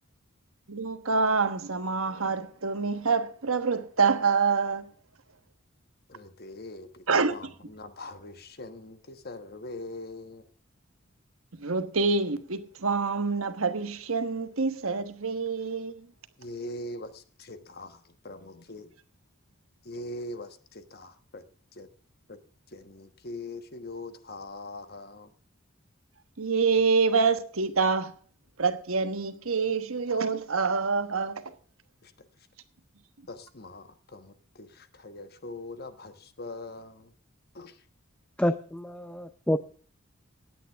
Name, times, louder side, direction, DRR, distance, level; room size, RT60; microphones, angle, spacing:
voice 1, 0.7-4.9 7.1-7.3 11.6-16.1 26.4-28.1 28.6-31.4, right 4 dB, 85° right, 1.3 m, -26 dB
voice 2, 6.1-7.0 7.3-10.5 16.4-18.9 19.8-21.4 21.7-21.9 22.3-22.4 22.7-25.3 32.0-32.1 33.3-37.1 37.5-37.8, left 2 dB, 50° left, 1.3 m, -42 dB
voice 3, 38.4-39.6, left 1 dB, 5° left, 0.5 m, -28 dB
17.5 x 9.4 x 3.5 m
head